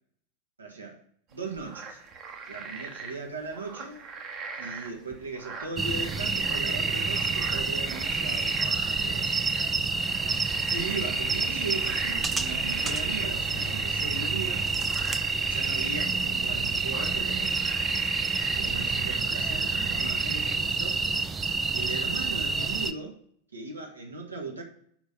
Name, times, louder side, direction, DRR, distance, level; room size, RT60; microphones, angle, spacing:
voice 1, 0.6-1.0 1.3-2.0 2.5-4.1 4.6-9.4 10.7-14.7 15.4-21.0 21.7-23.2 23.5-24.6, right 3 dB, 75° right, 0 dB, 1.7 m, -38 dB
sound 1, 1.3-20.6, right 5 dB, 30° right, 1.1 m, -40 dB
sound 2, 5.8-22.9, right 4 dB, 15° right, 0.4 m, -28 dB
6.0 x 5.2 x 6.8 m, 0.65 s
figure-of-eight pair, 90°, 0 cm